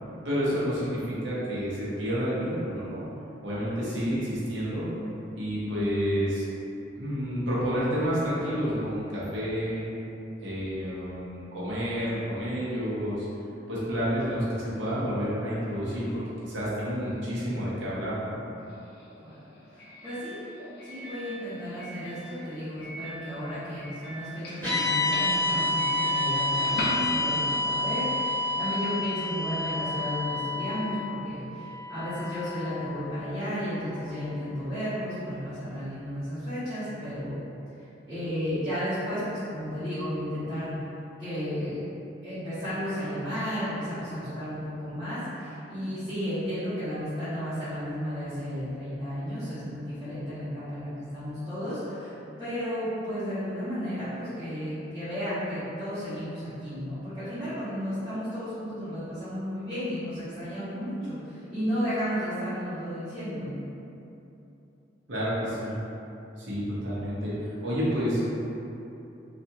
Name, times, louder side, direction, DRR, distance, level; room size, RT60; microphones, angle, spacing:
voice 1, 0.2-3.0 3.4-4.9 5.3-6.4 7.0-9.9 10.4-13.3 13.7-18.4 65.1-65.8 66.4-67.3 67.6-68.2, equal, 80° right, -9 dB, 0.9 m, -29 dB
Doorbell, 18.6-27.6, equal, 60° left, 0.5 m, -40 dB
voice 2, 19.7-20.4 20.8-37.4 38.1-40.7 41.2-41.9 42.2-63.6, equal, 20° right, -17 dB, 1.0 m, -33 dB
sound 1, 24.6-32.9, left 2 dB, 10° left, 1.3 m, -29 dB
3.4 x 2.5 x 2.8 m, 2.9 s
head